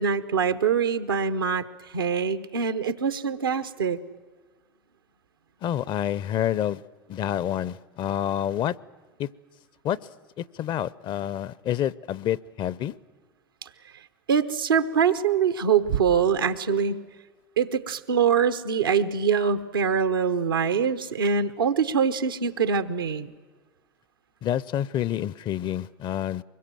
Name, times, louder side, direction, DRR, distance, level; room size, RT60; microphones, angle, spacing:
voice 1, 0.0-1.6 1.9-4.0 14.3-17.0 17.6-23.3, right 6 dB, 90° right, 10 dB, 1.0 m, -24 dB
voice 2, 5.6-6.8 7.1-8.8 9.2-9.3 9.8-10.0 10.4-13.0 24.4-26.4, left 11 dB, 45° left, 21 dB, 0.6 m, -28 dB
24.0 x 21.5 x 7.7 m, 1.3 s
hypercardioid pair, 85°, 11 cm